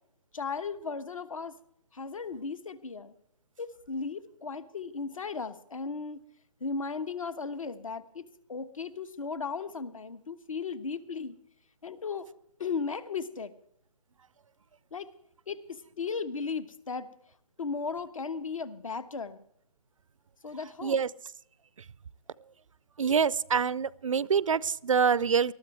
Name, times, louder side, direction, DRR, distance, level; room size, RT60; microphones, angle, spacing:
voice 1, 0.3-1.6 1.9-3.1 3.6-6.2 6.6-11.4 11.8-12.3 12.6-13.5 14.9-15.1 15.5-17.1 17.6-19.4 20.4-21.0, left 5 dB, 60° left, 13 dB, 1.2 m, -36 dB
voice 2, 23.0-25.5, right 6 dB, 55° right, 22 dB, 0.5 m, -25 dB
20.0 x 13.0 x 3.3 m, 0.69 s
figure-of-eight pair, 145°, 20 cm